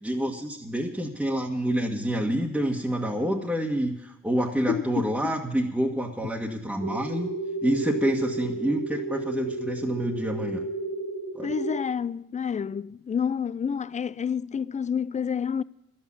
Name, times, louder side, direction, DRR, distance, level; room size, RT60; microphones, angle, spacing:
voice 1, 0.0-7.3 7.6-10.6 11.3-11.5, equal, 5° right, 1.6 m, -27 dB
voice 2, 4.7-5.3 11.4-15.6, left 7 dB, 25° left, 0.4 m, -29 dB
sound 1, 6.8-11.8, right 3 dB, 80° right, 2.8 m, -33 dB
11.5 x 8.7 x 9.9 m
cardioid pair, 90°, 30 cm